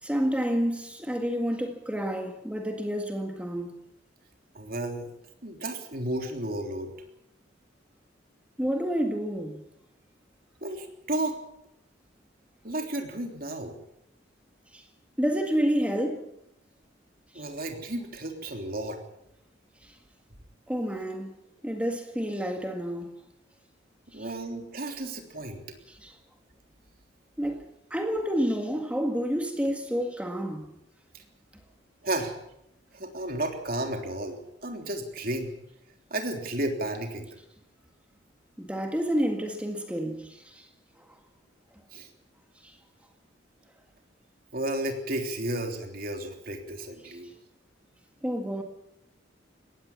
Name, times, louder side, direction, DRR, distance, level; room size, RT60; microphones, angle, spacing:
voice 1, 0.0-3.8 8.6-9.6 14.7-14.8 15.2-16.3 17.3-17.4 19.8-20.0 20.7-21.4 21.6-23.2 24.1-24.3 25.9-26.2 27.4-30.7 38.6-40.7 41.0-41.1 42.6-42.8 48.2-48.6, equal, 5° right, 1.9 m, -29 dB
voice 2, 4.5-5.1 5.4-6.9 10.6-11.4 12.6-13.7 17.3-19.0 24.1-25.8 31.1-31.2 32.0-32.3 32.9-35.5 36.1-37.4 41.9-42.1 44.5-47.3, right 1 dB, 50° right, 3.4 m, -33 dB
20.5 x 17.0 x 7.4 m
head